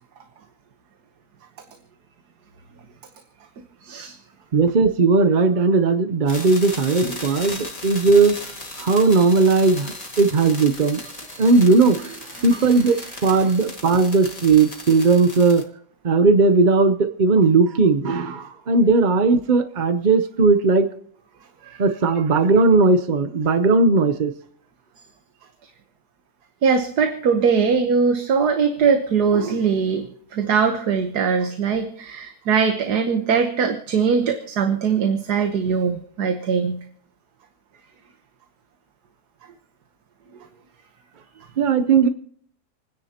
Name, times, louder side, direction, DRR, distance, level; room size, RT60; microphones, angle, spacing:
voice 1, 3.8-4.1 12.4-12.5 13.1-13.5 21.6-21.8 26.6-36.8 40.3-40.4, right 6 dB, 80° right, 6 dB, 1.6 m, -21 dB
voice 2, 4.5-8.4 8.8-11.0 11.4-15.6 16.0-20.9 21.8-24.3 41.6-42.1, right 4 dB, 45° right, 9 dB, 0.6 m, -17 dB
sound 1, 6.3-15.6, left 2 dB, 25° left, 2.0 m, -36 dB
28.5 x 10.5 x 2.9 m, 0.63 s
omnidirectional pair, 1.7 m